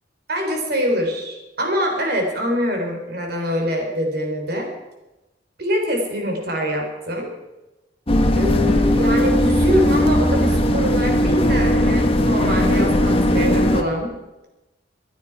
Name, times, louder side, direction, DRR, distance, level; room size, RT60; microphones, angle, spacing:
voice 1, 0.3-4.7 5.6-7.3 8.3-14.1, equal, 55° right, 2 dB, 3.7 m, -24 dB
sound 1, 8.1-13.8, equal, 30° left, 1.3 m, -18 dB
25.0 x 9.7 x 4.7 m, 1.0 s
head